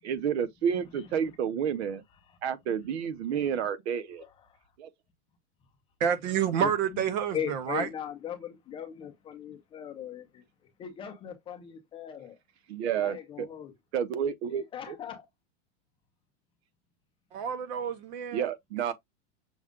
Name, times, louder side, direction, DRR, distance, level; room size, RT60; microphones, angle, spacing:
voice 1, 0.0-2.0 2.4-4.2 4.8-4.9 12.7-13.5 13.9-14.9 18.3-18.9, right 8 dB, 65° right, 1.1 m, -30 dB
voice 2, 0.9-1.3 2.2-2.4 3.5-3.7 4.2-4.6 6.6-7.0 7.3-10.4 10.8-12.4 13.0-13.7 14.5-15.2, left 8 dB, 15° left, 0.6 m, -39 dB
voice 3, 6.0-7.9 17.3-18.5, right 8 dB, 40° right, 0.7 m, -29 dB
6.2 x 2.3 x 3.6 m
supercardioid pair, 165°, 35 cm